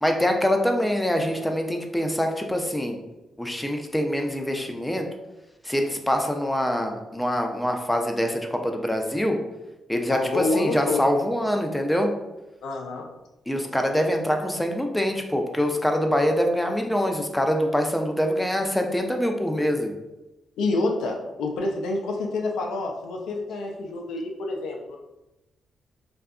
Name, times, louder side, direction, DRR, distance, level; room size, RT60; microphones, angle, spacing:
voice 1, 0.0-3.0 3.4-5.1 5.6-9.4 9.9-12.1 13.5-19.9, equal, 5° left, 3 dB, 0.4 m, -24 dB
voice 2, 10.1-11.0 12.6-13.0 20.6-25.0, left 2 dB, 85° left, 1 dB, 0.4 m, -27 dB
2.6 x 2.4 x 2.2 m, 0.99 s
cardioid pair, 70°, 0 cm